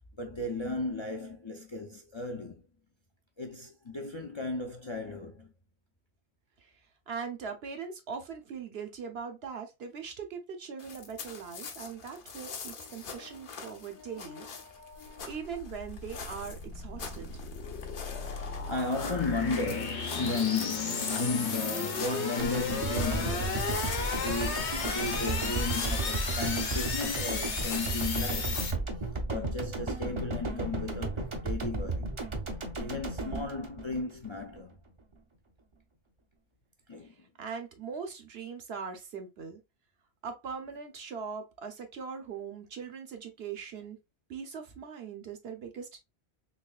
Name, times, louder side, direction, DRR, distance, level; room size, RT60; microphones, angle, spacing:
voice 1, 0.2-2.6 3.4-5.5 12.8-15.5 18.1-23.7 24.1-28.6 29.0-32.1 32.8-34.8 36.9-37.3, left 3 dB, 40° left, 0.4 m, -35 dB
voice 2, 7.1-14.4 15.3-17.4 37.0-39.6 40.2-44.0 44.3-46.0, right 6 dB, 70° right, 1.1 m, -41 dB
sound 1, 10.8-28.6, left 5 dB, 55° left, 0.9 m, -44 dB
sound 2, 14.9-28.7, left 4 dB, 90° left, 1.3 m, -35 dB
sound 3, 22.4-34.6, right 2 dB, 35° right, 0.6 m, -34 dB
4.0 x 3.1 x 2.4 m
omnidirectional pair, 1.1 m